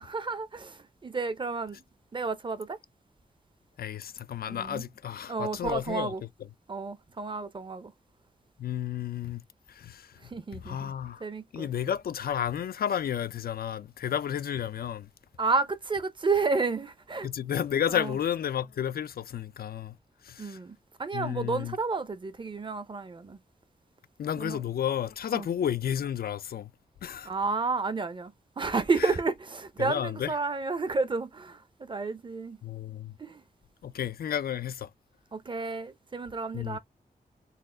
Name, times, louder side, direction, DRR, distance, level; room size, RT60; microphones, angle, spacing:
voice 1, 0.0-1.8 2.1-2.8 4.5-4.8 5.3-6.2 6.7-7.9 10.2-10.9 11.2-11.7 15.4-17.3 17.9-18.2 20.4-23.4 24.4-24.6 25.3-25.5 27.2-32.6 33.2-33.4 35.3-36.8, right 4 dB, 30° right, 0.6 m, -31 dB
voice 2, 3.8-6.1 8.6-9.4 9.7-10.1 10.5-11.3 11.5-15.1 17.2-20.0 20.2-20.6 21.1-21.8 24.2-26.7 27.0-27.3 29.0-29.1 29.8-30.3 32.6-33.1 33.8-34.9 36.5-36.8, left 9 dB, 75° left, 0.4 m, -32 dB
4.2 x 2.4 x 3.7 m
wide cardioid pair, 160°, 15 cm